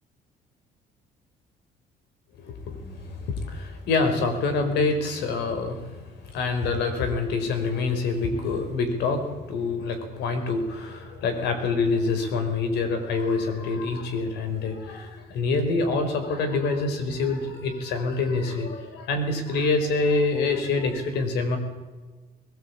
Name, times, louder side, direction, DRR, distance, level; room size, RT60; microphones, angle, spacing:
voice 1, 2.4-21.6, left 3 dB, 80° left, 7 dB, 5.0 m, -26 dB
21.0 x 20.0 x 8.7 m, 1.3 s
cardioid pair, 110°, 17 cm